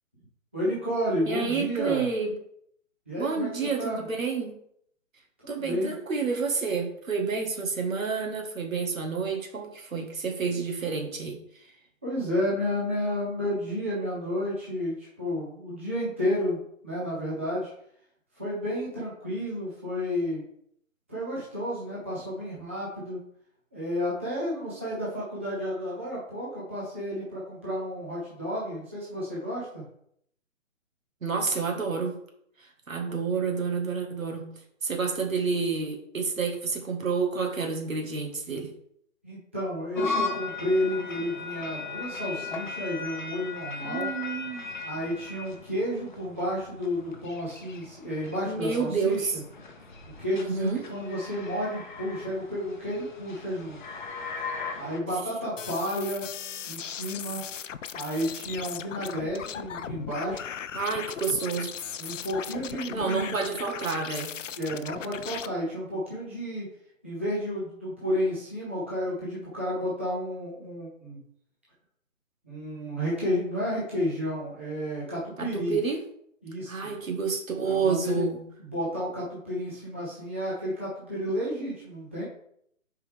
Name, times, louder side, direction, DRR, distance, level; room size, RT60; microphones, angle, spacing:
voice 1, 0.5-2.1 3.1-4.1 5.4-6.0 12.0-17.7 18.3-20.4 21.1-23.2 23.7-29.8 33.1-33.2 39.2-44.1 44.8-49.4 50.2-53.8 54.8-56.3 56.7-57.5 57.9-60.5 62.0-63.4 64.5-66.7 67.0-71.2 72.4-75.8 76.4-76.9 77.6-78.3 78.6-82.2, equal, 10° right, -8 dB, 0.7 m, -31 dB
voice 2, 1.3-2.3 3.2-4.5 5.5-11.4 31.2-32.2 32.9-34.5 34.8-38.7 43.8-44.7 48.5-49.4 50.3-50.8 60.7-61.8 62.9-64.3 75.4-76.0 76.7-78.4, right 5 dB, 80° right, 2 dB, 1.9 m, -29 dB
sound 1, 40.0-55.0, left 4 dB, 35° left, 0.9 m, -37 dB
sound 2, 55.6-65.5, left 8 dB, 70° left, 0.5 m, -38 dB
6.6 x 4.7 x 3.6 m, 0.69 s
hypercardioid pair, 170°, 40 cm